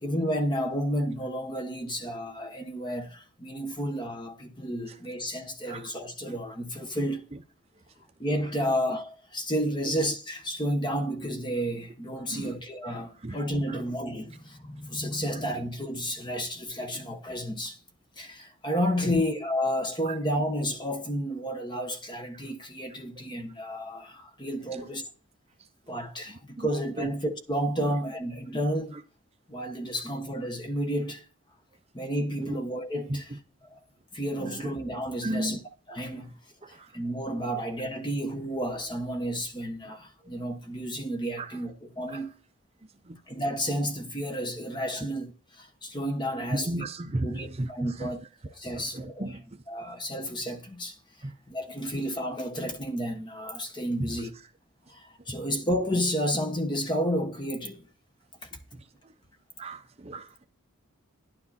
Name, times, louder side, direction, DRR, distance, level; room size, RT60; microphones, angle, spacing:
voice 1, 0.0-7.3 8.2-17.8 18.2-25.1 25.9-29.0 29.5-31.2 31.9-33.3 33.6-33.8 34.1-35.6 35.9-36.3 36.7-42.3 43.3-46.9 47.2-48.2 48.4-49.3 49.7-51.0 51.5-54.3 54.9-57.9, equal, 20° left, 1.2 m, -31 dB
voice 2, 34.4-34.7 35.2-35.6 36.7-37.0 41.4-41.6 42.1-42.2 43.1-43.2 45.0-45.1 46.5-48.1 48.7-49.5 51.2-51.3 54.0-54.1 58.7-59.1 59.6-60.4, right 1 dB, 30° right, 0.6 m, -34 dB
10.5 x 9.8 x 4.2 m
head